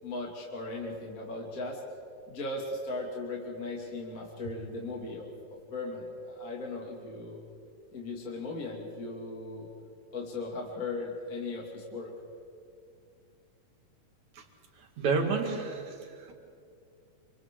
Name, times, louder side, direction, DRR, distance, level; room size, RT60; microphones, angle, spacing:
voice 1, 0.0-1.8 2.3-7.4 7.9-9.7 10.1-12.1, left 2 dB, 30° left, -2 dB, 2.4 m, -37 dB
voice 2, 14.8-16.3, right 4 dB, 60° right, 2 dB, 3.2 m, -31 dB
28.0 x 26.5 x 3.8 m, 2.4 s
omnidirectional pair, 3.9 m